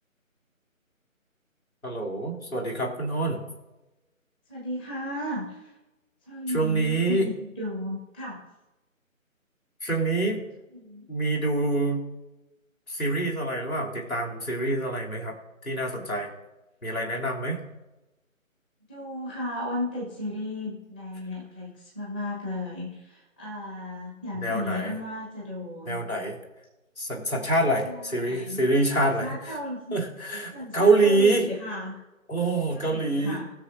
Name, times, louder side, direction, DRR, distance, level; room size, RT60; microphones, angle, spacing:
voice 1, 1.8-3.4 6.5-7.3 9.8-10.4 11.1-12.1 12.9-15.3 15.6-16.3 16.8-17.6 24.4-24.9 25.9-26.3 27.0-29.3 29.9-31.5 32.3-33.4, right 2 dB, 85° left, -2 dB, 3.0 m, -25 dB
voice 2, 4.5-5.7 6.2-8.4 10.7-11.1 18.9-26.0 27.8-28.7 29.0-30.0 30.5-32.0 32.7-33.5, left 1 dB, 5° left, -5 dB, 1.0 m, -35 dB
19.5 x 6.6 x 2.6 m, 1.0 s
figure-of-eight pair, 155°, 41 cm